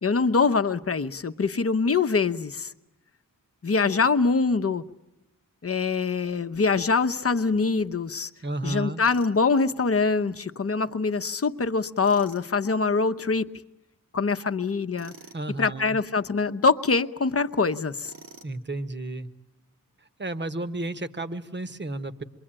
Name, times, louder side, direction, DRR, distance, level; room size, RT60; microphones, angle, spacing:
voice 1, 0.0-2.7 3.6-4.8 5.6-8.3 8.6-13.5 14.1-15.1 15.6-18.1, left 4 dB, 45° left, 10 dB, 0.9 m, -24 dB
voice 2, 8.4-9.0 15.3-16.0 18.4-19.3 20.2-22.2, right 2 dB, 35° right, 10 dB, 1.3 m, -32 dB
Tools, 9.0-9.4 12.0-12.5 14.9-15.4 18.0-18.6, right 4 dB, 80° right, 2.4 m, -47 dB
27.0 x 23.0 x 8.9 m, 0.93 s
wide cardioid pair, 115°, 33 cm